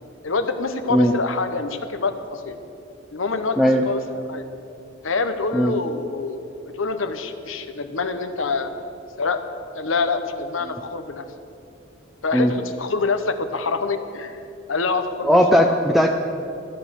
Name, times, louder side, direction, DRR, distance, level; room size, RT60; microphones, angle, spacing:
voice 1, 0.2-2.6 3.1-4.0 4.3-4.4 5.0-6.4 6.7-8.7 9.2-9.4 9.7-11.2 12.2-14.4 14.7-15.8, left 4 dB, 75° left, 9 dB, 1.0 m, -26 dB
voice 2, 15.2-16.1, equal, ahead, 2 dB, 0.5 m, -17 dB
13.5 x 11.0 x 6.4 m, 2.6 s
head